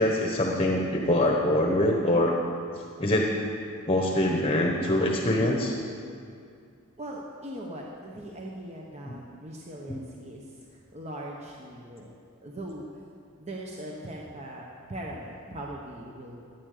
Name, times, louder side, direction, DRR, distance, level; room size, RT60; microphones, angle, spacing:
voice 1, 0.0-2.3 3.0-3.3 3.9-5.7 9.1-9.2 9.9-10.0, left 1 dB, 25° left, 0 dB, 1.0 m, -24 dB
voice 2, 7.0-10.4 10.9-12.1 12.4-12.8 13.4-16.4, right 1 dB, 30° right, -2 dB, 1.0 m, -40 dB
13.0 x 9.4 x 6.6 m, 2.4 s
head